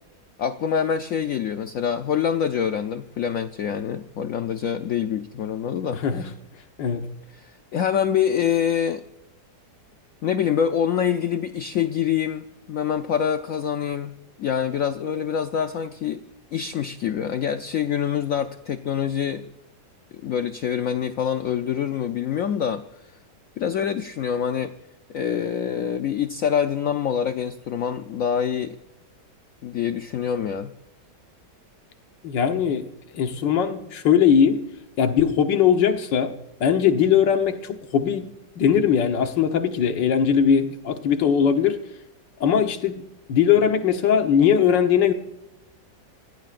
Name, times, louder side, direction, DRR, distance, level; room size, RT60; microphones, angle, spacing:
voice 1, 0.4-6.0 7.4-9.0 10.2-14.1 14.4-16.2 16.5-19.5 20.2-22.8 23.6-24.7 25.1-28.8 29.6-30.7, left 8 dB, 65° left, 8 dB, 0.9 m, -25 dB
voice 2, 5.9-6.3 6.8-7.1 32.2-32.9 33.1-34.6 35.0-36.3 36.6-38.3 38.6-41.8 42.4-43.0 43.3-45.1, left 8 dB, 80° left, 6 dB, 1.9 m, -20 dB
26.5 x 16.5 x 2.5 m, 0.87 s
omnidirectional pair, 1.9 m